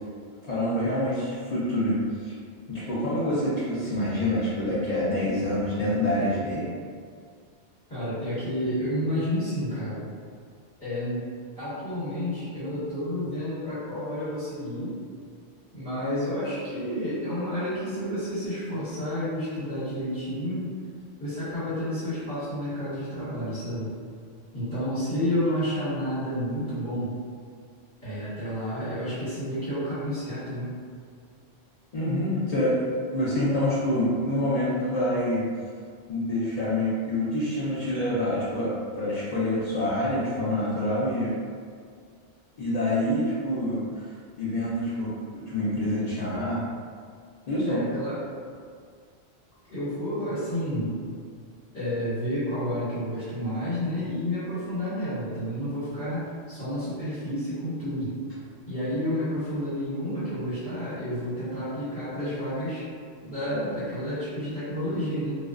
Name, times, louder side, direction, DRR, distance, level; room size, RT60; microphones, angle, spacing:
voice 1, 0.4-2.3 2.7-6.6 31.9-32.8 33.1-35.4 36.1-41.3 42.6-44.1 44.4-46.6 47.5-47.8, left 1 dB, 60° left, -9 dB, 0.4 m, -26 dB
voice 2, 7.9-10.1 10.8-11.3 11.6-14.9 15.7-20.7 21.2-23.9 24.5-27.1 28.0-30.7 47.7-48.2 49.7-51.0 51.7-58.1 58.7-62.9 63.2-65.3, equal, 40° left, -15 dB, 1.4 m, -30 dB
2.4 x 2.2 x 2.3 m, 2.1 s
omnidirectional pair, 1.3 m